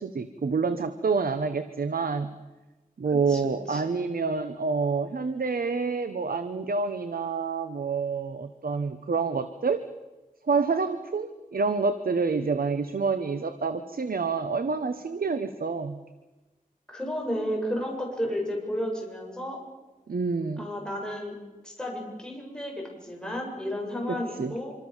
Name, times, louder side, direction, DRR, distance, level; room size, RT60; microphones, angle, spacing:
voice 1, 0.0-2.3 3.0-9.9 10.5-16.0 20.1-20.7 24.1-24.5, right 4 dB, 85° right, 10 dB, 1.2 m, -28 dB
voice 2, 3.3-4.1 16.9-19.6 20.6-21.4 21.6-24.7, equal, 5° left, -1 dB, 7.9 m, -32 dB
26.0 x 26.0 x 7.4 m, 1.1 s
wide cardioid pair, 90°, 15 cm